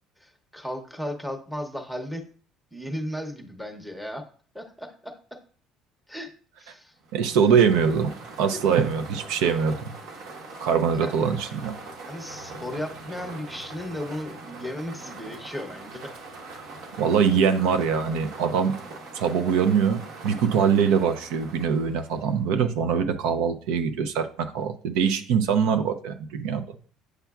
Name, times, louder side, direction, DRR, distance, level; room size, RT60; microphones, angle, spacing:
voice 1, 0.2-2.2 2.7-4.3 4.5-5.4 6.1-6.3 6.6-6.9 11.0-11.3 12.0-16.1, left 1 dB, ahead, 4 dB, 0.8 m, -35 dB
sound 1, 7.0-22.5, right 3 dB, 65° right, 1.2 m, -42 dB
voice 2, 7.1-9.9 10.6-11.7 17.0-18.7 19.1-20.0 20.2-26.6, right 7 dB, 80° right, 8 dB, 0.6 m, -23 dB
8.0 x 5.7 x 2.3 m, 0.42 s
cardioid pair, 150°, 0 cm